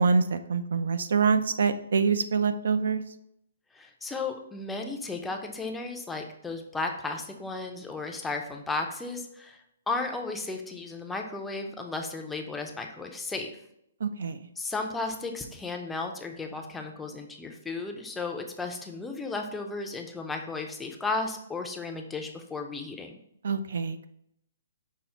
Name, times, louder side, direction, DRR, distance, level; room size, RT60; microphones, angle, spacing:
voice 1, 0.0-3.0 14.0-14.4 23.4-24.1, right 5 dB, 70° right, 10 dB, 0.3 m, -25 dB
voice 2, 3.7-9.6 9.9-13.6 14.6-23.2, left 3 dB, 5° left, 3 dB, 0.4 m, -34 dB
5.6 x 2.0 x 4.3 m, 0.74 s
hypercardioid pair, 150°, 0 cm